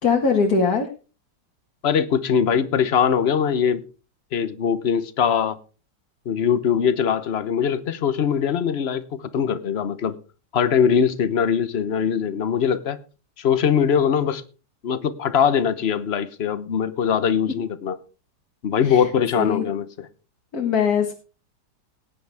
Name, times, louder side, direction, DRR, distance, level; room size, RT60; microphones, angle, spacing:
voice 1, 0.0-0.9 18.8-19.1 19.4-19.7 20.5-21.1, left 5 dB, 60° left, 2.1 m, -21 dB
voice 2, 1.8-3.8 4.3-5.6 6.3-10.1 10.5-13.0 13.4-14.4 14.8-18.0 18.6-19.8, left 7 dB, 45° left, 1.1 m, -21 dB
18.0 x 10.0 x 3.5 m
omnidirectional pair, 1.8 m